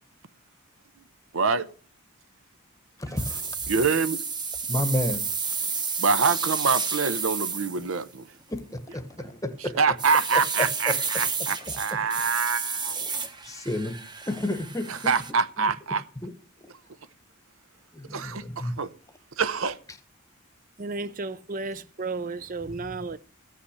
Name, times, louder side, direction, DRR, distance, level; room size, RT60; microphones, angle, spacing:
voice 1, 1.3-1.7 3.1-3.2 3.7-4.2 6.0-8.3 9.6-13.1 14.9-16.0 18.1-18.9 19.4-19.8, right 5 dB, 75° right, 0.8 m, -25 dB
voice 2, 3.0-3.5 4.7-5.3 8.5-9.8 13.4-14.0 14.3-15.1 16.2-16.3 17.9-18.7, left 1 dB, 15° left, 1.0 m, -31 dB
sound 1, 3.2-8.1 9.1-9.5 10.0-15.3, right 5 dB, 20° right, 1.0 m, -31 dB
voice 3, 20.8-23.2, right 3 dB, 40° right, 0.5 m, -33 dB
15.0 x 5.8 x 6.5 m
head